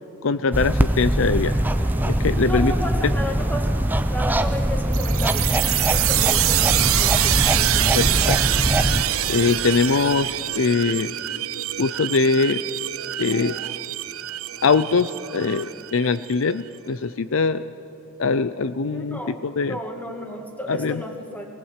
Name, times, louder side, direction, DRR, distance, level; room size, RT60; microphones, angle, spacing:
voice 1, 0.2-1.6 2.1-2.7 7.9-8.4 9.3-11.1 11.8-12.6 13.2-13.6 14.6-17.7 18.2-19.8 20.7-21.0, left 4 dB, 60° left, 13 dB, 0.5 m, -22 dB
sound 1, 0.5-9.0, right 1 dB, 10° right, 0.6 m, -22 dB
sound 2, 1.5-10.7, right 1 dB, 35° right, 1.4 m, -38 dB
voice 2, 2.4-3.8 4.0-8.0 18.9-19.4 19.7-21.5, equal, 5° left, 3 dB, 2.1 m, -33 dB
sound 3, 4.9-16.3, right 13 dB, 65° right, 0.6 m, -25 dB
22.5 x 18.5 x 8.2 m, 2.9 s
head